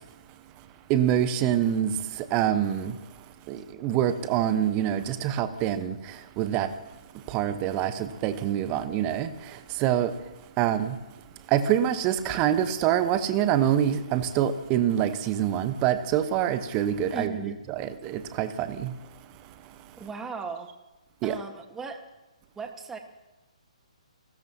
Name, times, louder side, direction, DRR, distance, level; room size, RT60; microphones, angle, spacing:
voice 1, 0.9-1.9 2.3-2.9 3.5-5.9 6.4-6.7 7.3-9.3 9.8-10.1 10.6-10.9 11.5-17.3 17.7-18.9 21.2-21.4, right 10 dB, 25° right, 1.0 m, -25 dB
voice 2, 17.1-17.6 20.0-20.7 21.2-22.0 22.6-23.0, right 5 dB, 10° right, 1.4 m, -37 dB
29.5 x 13.5 x 2.8 m
figure-of-eight pair, 130°, 4 cm